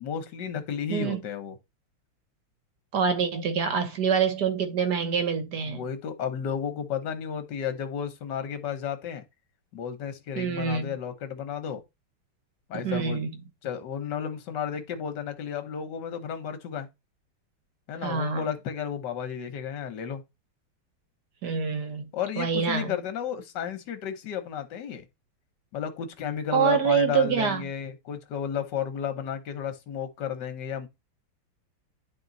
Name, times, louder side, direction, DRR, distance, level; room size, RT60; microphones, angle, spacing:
voice 1, 0.0-1.6 5.6-9.2 9.7-11.8 12.7-13.2 13.6-16.9 17.9-20.2 22.1-25.1 25.7-30.9, left 8 dB, 60° left, 1.6 m, -33 dB
voice 2, 0.9-1.2 2.9-5.8 10.4-11.0 12.8-13.3 18.0-18.5 21.4-22.1 22.4-23.0 26.5-27.6, right 6 dB, 55° right, 1.6 m, -26 dB
10.5 x 3.7 x 4.0 m
omnidirectional pair, 2.4 m